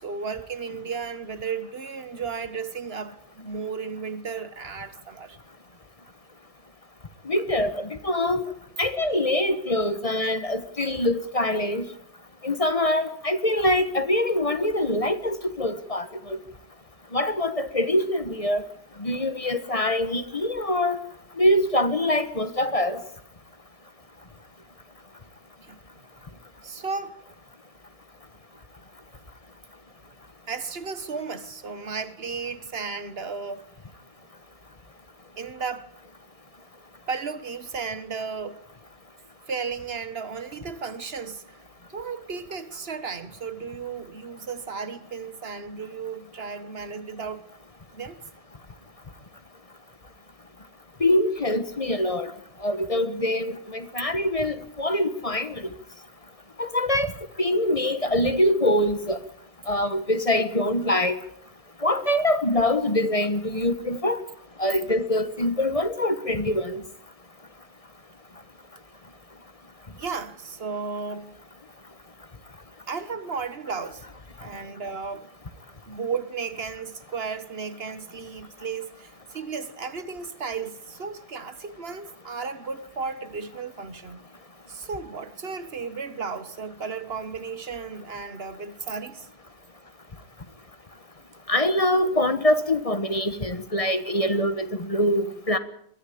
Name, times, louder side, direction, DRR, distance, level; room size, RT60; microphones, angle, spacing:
voice 1, 0.0-5.4 25.6-25.8 26.6-27.2 30.5-33.6 35.4-35.9 37.1-38.6 39.5-41.6 41.9-47.4 47.9-48.2 57.6-57.7 70.0-71.4 72.9-74.1 74.4-75.3 75.8-84.2 84.7-89.3, right 5 dB, 65° right, 1.5 m, -34 dB
voice 2, 7.2-8.4 8.8-11.9 12.4-16.4 17.1-18.7 19.0-21.0 21.4-23.0 51.0-52.3 52.6-55.7 56.6-57.1 57.4-59.2 59.7-61.2 61.8-64.2 64.6-66.8 91.5-95.6, left 1 dB, 35° left, 1.3 m, -24 dB
22.5 x 14.0 x 8.5 m
omnidirectional pair, 1.1 m